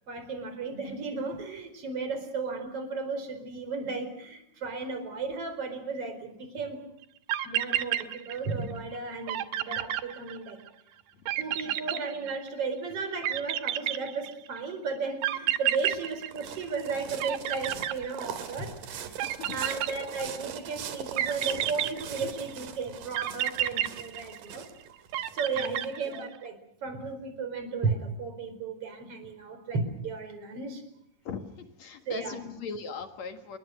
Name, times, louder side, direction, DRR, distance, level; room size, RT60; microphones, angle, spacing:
voice 1, 0.1-6.8 7.4-10.6 11.3-19.1 19.5-24.7 25.3-30.8 32.1-32.4, right 4 dB, 30° right, 8 dB, 4.9 m, -34 dB
sound 1, 7.0-7.1 7.3-8.7 8.9-9.0 9.3-10.7 11.3-12.7 13.2-14.6 15.2-16.9 17.2-18.6 19.2-20.4 21.2-22.6 23.1-24.7 25.1-26.4, right 12 dB, 75° right, 2.3 m, -30 dB
voice 2, 11.1-11.8 19.2-19.6 25.6-25.9 31.2-33.6, left 5 dB, 65° left, 7 dB, 1.8 m, -40 dB
sound 2, 15.3-26.1, right 8 dB, 55° right, 2.7 m, -42 dB
29.5 x 22.0 x 6.4 m, 0.74 s
omnidirectional pair, 5.8 m